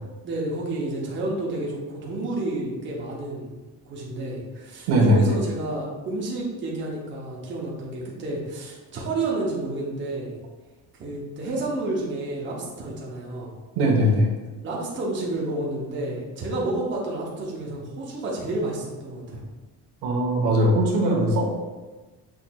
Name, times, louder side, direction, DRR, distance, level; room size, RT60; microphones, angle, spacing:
voice 1, 0.2-10.4 11.0-13.5 14.6-19.4, right 2 dB, 30° right, -3 dB, 0.7 m, -30 dB
voice 2, 4.9-5.3 13.8-14.3 20.0-21.5, equal, 90° right, -2 dB, 1.1 m, -20 dB
6.1 x 3.1 x 2.2 m, 1.2 s
cardioid pair, 175°, 37 cm